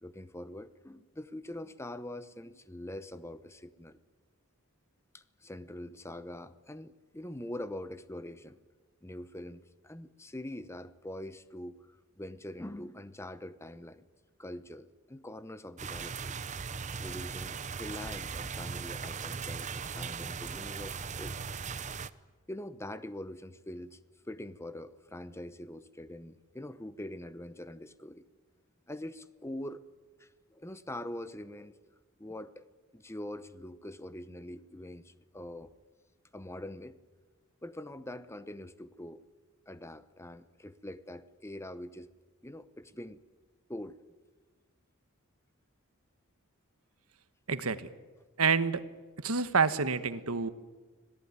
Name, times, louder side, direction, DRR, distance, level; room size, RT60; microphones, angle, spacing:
voice 1, 0.0-4.0 5.1-8.6 9.0-14.0 14.4-16.4 17.0-21.4 21.7-22.0 22.5-24.0 24.3-28.3 28.9-29.8 30.2-32.6 32.9-35.7 36.3-37.0 37.6-39.2 39.7-42.1 42.4-43.2 43.7-44.0, left 1 dB, 10° left, 13 dB, 0.8 m, -44 dB
sound 1, 15.8-22.1, right 5 dB, 30° right, 0.7 m, -38 dB
voice 2, 47.5-47.9 48.4-48.8 49.2-50.5, right 5 dB, 75° right, 13 dB, 1.3 m, -28 dB
26.0 x 17.5 x 9.6 m, 1.4 s
head